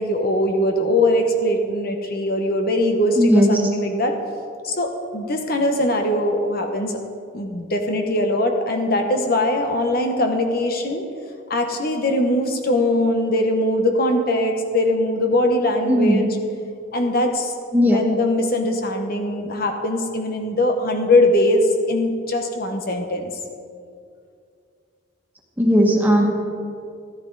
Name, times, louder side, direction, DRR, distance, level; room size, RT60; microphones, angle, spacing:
voice 1, 0.0-4.1 4.6-6.9 7.3-11.1 11.5-16.4 16.9-17.5 17.8-23.3, left 1 dB, 50° left, 4 dB, 1.0 m, -21 dB
voice 2, 3.2-3.6 15.9-16.3 17.7-18.0 25.6-26.2, equal, 10° right, -1 dB, 1.7 m, -16 dB
13.5 x 13.0 x 4.0 m, 2.4 s
head